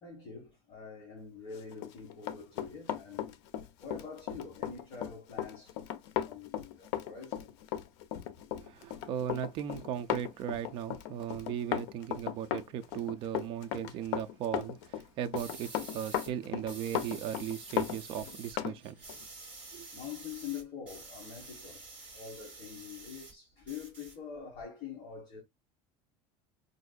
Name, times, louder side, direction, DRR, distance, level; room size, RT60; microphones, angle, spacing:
voice 1, 0.0-3.4 3.8-5.8 6.2-7.5 19.9-21.8 22.1-25.4, left 6 dB, 35° left, 1.3 m, -45 dB
Run, 1.7-18.8 19.1-19.2, left 11 dB, 80° left, 0.6 m, -36 dB
voice 2, 8.6-19.0 19.7-19.9, right 9 dB, 35° right, 0.4 m, -37 dB
sound 1, 15.4-16.3 16.7-18.6 18.8-23.3 23.6-24.6, right 3 dB, 10° right, 1.6 m, -48 dB
4.4 x 2.6 x 2.3 m
cardioid pair, 170°, 15 cm